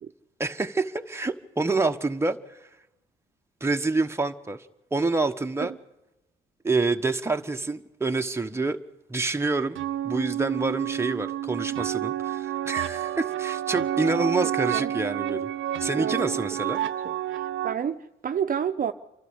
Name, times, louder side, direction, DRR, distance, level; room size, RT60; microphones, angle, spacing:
voice 1, 0.4-2.7 3.6-4.7 4.9-5.7 6.6-8.8 9.1-9.8 10.0-15.5 15.8-16.8, right 3 dB, 15° right, 1.2 m, -27 dB
sound 1, 9.8-17.7, right 12 dB, 75° right, 0.8 m, -29 dB
voice 2, 17.3-18.9, right 8 dB, 45° right, 0.8 m, -29 dB
28.0 x 12.0 x 8.1 m
cardioid pair, 90°, 20 cm